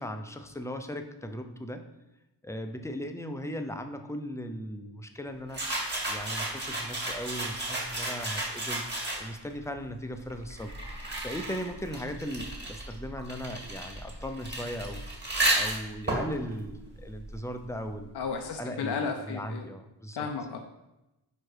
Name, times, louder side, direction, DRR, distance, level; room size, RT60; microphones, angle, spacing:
voice 1, 0.0-1.8 2.4-5.6 6.1-8.8 9.2-10.7 11.1-15.0 15.5-18.1 18.6-20.3, equal, 5° left, 6 dB, 0.6 m, -38 dB
sound 1, 5.5-9.5 10.3-17.7, right 1 dB, 25° right, 1.9 m, -33 dB
voice 2, 18.1-19.7 20.2-20.6, left 5 dB, 65° left, 4 dB, 0.7 m, -33 dB
5.0 x 4.8 x 4.7 m, 0.94 s
cardioid pair, 80°, 43 cm